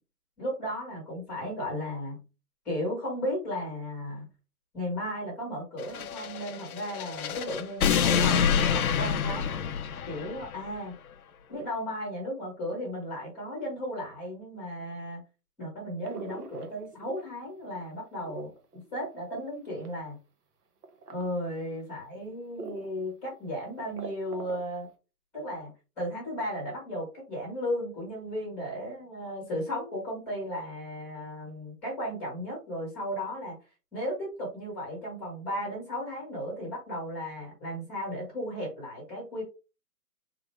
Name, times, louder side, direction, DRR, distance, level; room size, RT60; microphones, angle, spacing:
voice 1, 0.4-2.2 2.6-4.2 4.7-9.5 10.1-10.9 11.5-15.2 15.6-20.2 21.1-24.9 25.3-25.7 26.0-33.6 33.9-39.4, equal, 5° left, -4 dB, 0.9 m, -35 dB
sound 1, 5.8-10.6, left 7 dB, 65° left, 0.6 m, -27 dB
sound 2, 16.0-17.4 17.8-20.0 20.8-21.3 21.8-21.9 22.6-23.0 23.3-23.4 23.7-24.8, right 3 dB, 70° right, 1.1 m, -42 dB
3.6 x 2.9 x 3.1 m, 0.31 s
hypercardioid pair, 160°, 48 cm